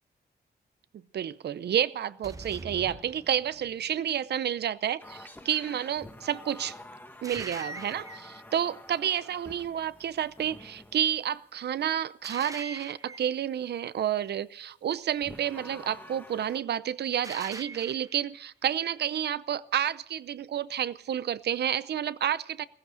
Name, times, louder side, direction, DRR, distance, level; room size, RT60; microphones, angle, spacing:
voice 1, 1.1-6.8 7.2-22.6, right 10 dB, 70° right, 17 dB, 0.6 m, -30 dB
sound 1, 2.2-3.9 7.2-8.4 12.2-13.4 17.2-18.2, right 3 dB, 20° right, 0.8 m, -42 dB
sound 2, 5.0-11.3 15.2-16.6, left 1 dB, 10° left, 1.4 m, -48 dB
16.0 x 15.5 x 5.1 m, 0.65 s
wide cardioid pair, 120°, 18 cm